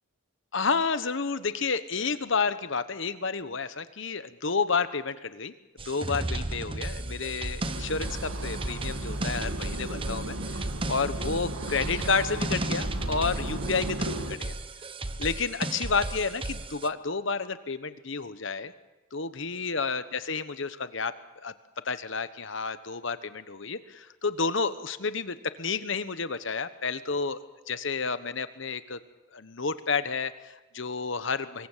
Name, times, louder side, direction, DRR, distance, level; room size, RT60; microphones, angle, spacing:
voice 1, 0.5-5.5 5.8-14.5 15.2-18.7 19.1-21.5 21.8-27.4 27.7-29.0 29.3-31.7, left 4 dB, 60° left, 12 dB, 1.1 m, -30 dB
sound 1, 5.8-16.9, right 2 dB, 25° right, 1.0 m, -35 dB
sound 2, 7.6-14.4, right 1 dB, 80° right, 1.9 m, -35 dB
25.5 x 22.5 x 7.4 m, 1.1 s
head